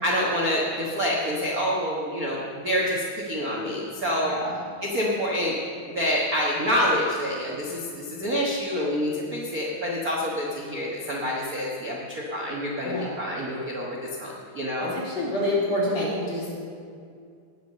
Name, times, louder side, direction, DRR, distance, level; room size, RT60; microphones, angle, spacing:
voice 1, 0.0-4.3 4.8-5.6 5.9-14.9, equal, 45° right, -3 dB, 1.2 m, -27 dB
voice 2, 4.2-4.6 12.8-13.1 14.8-16.5, left 1 dB, 55° left, -6 dB, 4.7 m, -27 dB
19.5 x 6.7 x 6.7 m, 2.3 s
omnidirectional pair, 3.6 m